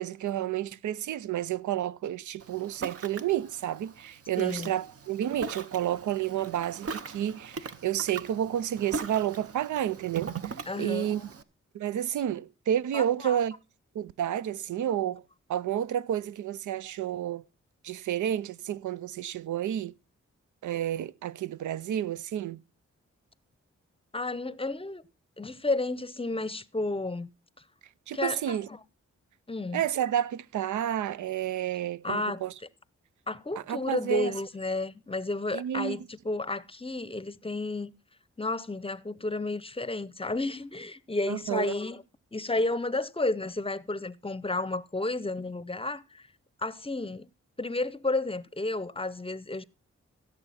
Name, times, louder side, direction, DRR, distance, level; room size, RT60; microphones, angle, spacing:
voice 1, 0.0-11.3 11.7-13.5 13.9-15.2 15.5-17.4 17.8-19.9 20.6-22.6 28.1-28.7 29.7-32.5 33.6-34.4 35.5-36.1 41.3-41.7, right 11 dB, 75° right, 0.5 m, -30 dB
Ocean, 2.4-11.4, right 5 dB, 50° right, 0.8 m, -41 dB
voice 2, 4.4-4.7 10.7-11.1 12.9-13.4 24.1-25.1 25.4-27.3 28.1-28.8 29.5-29.8 32.0-32.5 33.3-37.9 38.4-42.0 42.3-46.2 46.6-47.3 47.6-49.6, left 2 dB, 20° left, 0.7 m, -32 dB
16.0 x 6.8 x 4.1 m
supercardioid pair, 45°, 30 cm